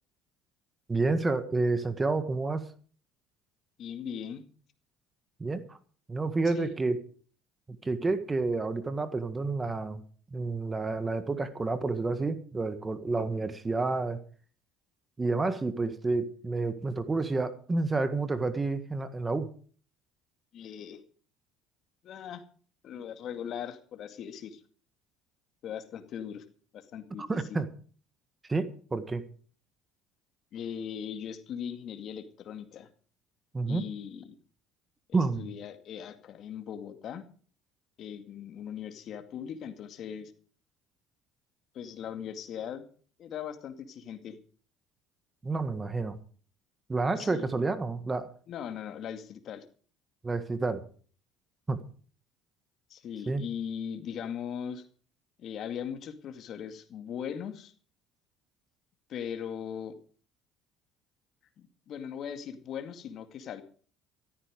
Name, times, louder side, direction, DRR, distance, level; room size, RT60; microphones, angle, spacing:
voice 1, 0.9-2.6 5.4-5.8 6.1-7.0 7.8-10.0 10.3-14.2 15.2-19.5 27.3-27.7 28.5-29.2 33.5-33.8 35.1-35.5 45.4-46.2 46.9-48.3 50.2-50.8 51.7-51.8 53.3-53.4, right 3 dB, 20° right, 12 dB, 1.7 m, -29 dB
voice 2, 3.8-4.4 6.5-6.7 20.5-21.0 22.0-22.4 22.8-24.6 25.6-26.4 26.7-27.2 30.5-32.9 33.7-34.4 35.1-37.3 38.0-40.3 41.7-42.8 43.2-44.4 47.2-47.5 48.5-49.6 52.9-54.9 55.4-57.7 59.1-60.0 61.6-63.6, left 8 dB, 55° left, 9 dB, 2.1 m, -39 dB
14.0 x 13.5 x 5.2 m, 0.43 s
supercardioid pair, 95°, 0 cm